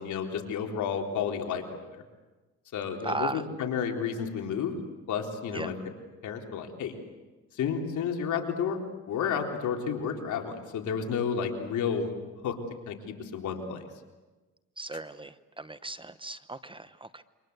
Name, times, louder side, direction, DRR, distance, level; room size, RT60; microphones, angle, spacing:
voice 1, 0.0-1.6 1.9-2.0 2.7-4.7 5.1-5.7 6.2-7.0 7.5-8.8 9.1-12.1 12.4-12.6 12.9-13.8, left 7 dB, 75° left, 3 dB, 3.8 m, -31 dB
voice 2, 3.0-3.4 5.5-5.7 14.8-17.2, right 2 dB, 15° right, 13 dB, 1.0 m, -36 dB
28.5 x 25.0 x 8.1 m, 1.2 s
cardioid pair, 90°, 30 cm